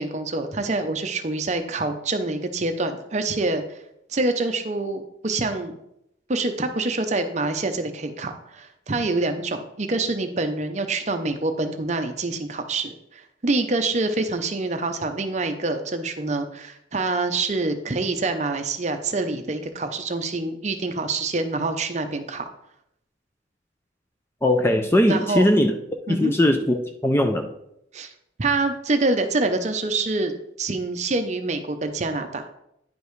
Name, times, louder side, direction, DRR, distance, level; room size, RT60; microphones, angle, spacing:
voice 1, 0.0-3.8 4.1-5.8 6.3-22.5 25.0-25.5 26.1-26.3 27.9-28.1 28.4-30.3 30.6-32.5, right 3 dB, 35° right, 7 dB, 0.6 m, -26 dB
voice 2, 24.4-25.7 26.1-27.5, left 1 dB, 10° left, 5 dB, 0.4 m, -20 dB
10.0 x 5.2 x 3.2 m, 0.79 s
head